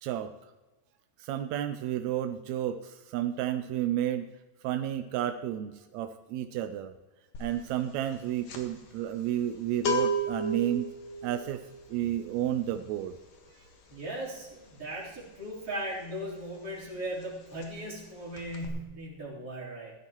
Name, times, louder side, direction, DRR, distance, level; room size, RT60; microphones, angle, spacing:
voice 1, 0.0-0.3 1.2-4.3 4.6-6.9 7.4-10.9 11.2-11.6 11.9-13.2, right 11 dB, 80° right, 8 dB, 1.6 m, -31 dB
sound 1, 7.4-7.6 7.9-16.5 16.7-17.0 17.2-18.1 18.3-18.7, right 1 dB, 75° left, 3.2 m, -35 dB
voice 2, 13.9-19.9, right 1 dB, 30° right, -4 dB, 4.2 m, -38 dB
16.0 x 12.0 x 3.0 m, 1.2 s
omnidirectional pair, 3.7 m